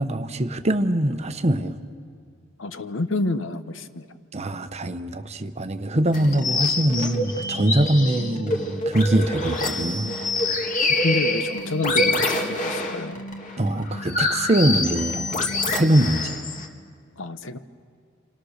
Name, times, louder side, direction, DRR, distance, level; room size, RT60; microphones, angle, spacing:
voice 1, 0.0-1.8 4.3-10.1 13.6-16.4, right 1 dB, 35° right, 0.9 m, -23 dB
voice 2, 2.6-4.1 11.0-13.2 17.2-17.6, left 2 dB, 65° left, 1.0 m, -28 dB
sound 1, 6.1-16.7, left 2 dB, 40° left, 1.9 m, -26 dB
28.0 x 26.5 x 6.5 m
head